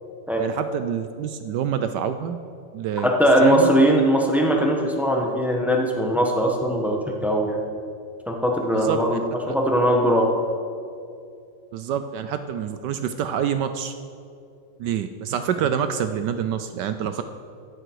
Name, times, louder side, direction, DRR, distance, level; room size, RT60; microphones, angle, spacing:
voice 1, 0.4-2.4 2.7-3.1 3.4-3.7 8.7-9.6 11.7-13.9 14.8-17.2, right 8 dB, 70° right, 9 dB, 1.1 m, -27 dB
voice 2, 3.0-7.6 8.3-10.3, equal, ahead, 0 dB, 1.0 m, -20 dB
15.0 x 9.9 x 4.7 m, 2.4 s
omnidirectional pair, 2.1 m